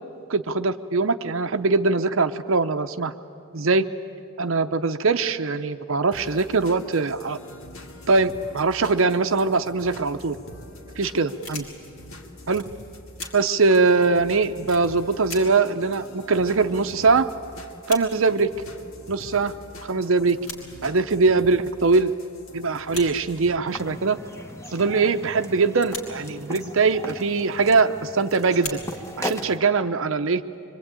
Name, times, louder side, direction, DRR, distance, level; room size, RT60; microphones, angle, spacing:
voice 1, 0.3-3.1 3.5-3.9 4.4-7.4 8.1-10.4 11.0-11.6 12.5-12.6 13.3-17.3 17.9-18.5 19.1-19.5 19.9-20.4 20.8-22.1 22.5-24.2 24.7-28.8 29.2-30.4, right 4 dB, 60° right, 8 dB, 0.7 m, -22 dB
sound 1, 6.1-23.6, left 1 dB, 65° left, 2.0 m, -44 dB
sound 2, 11.4-12.0 12.5-12.7 13.1-13.3 13.8-13.9 14.6-14.8 15.2-15.4 15.6-15.7 15.9-17.0 17.3-17.4 17.6-18.0 18.8-18.9 19.3-19.6 20.2-20.6 21.7-22.0 22.8-23.1 23.3-23.9 24.4-24.7 25.6-26.2 27.3-27.5 28.5-29.2, left 3 dB, 90° left, 4.4 m, -39 dB
sound 3, 23.7-29.6, left 1 dB, 15° left, 1.1 m, -37 dB
24.5 x 24.5 x 9.0 m, 2.6 s
head